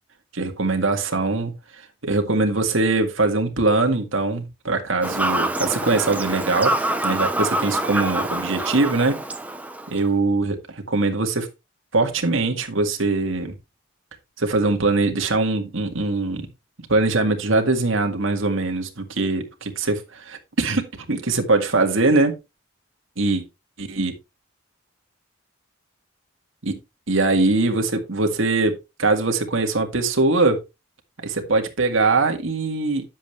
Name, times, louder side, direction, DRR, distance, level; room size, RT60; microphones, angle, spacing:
voice 1, 0.3-1.5 2.0-6.7 7.0-9.2 9.9-11.5 11.9-13.5 14.4-16.5 16.9-22.4 23.2-23.4 23.8-24.1 26.6-26.8 27.1-30.6 31.2-33.0, right 3 dB, 70° right, 1.9 m, -22 dB
Fowl / Bird vocalization bird call bird song, 5.0-10.0, right 1 dB, 5° right, 0.8 m, -26 dB
10.5 x 7.5 x 3.2 m
head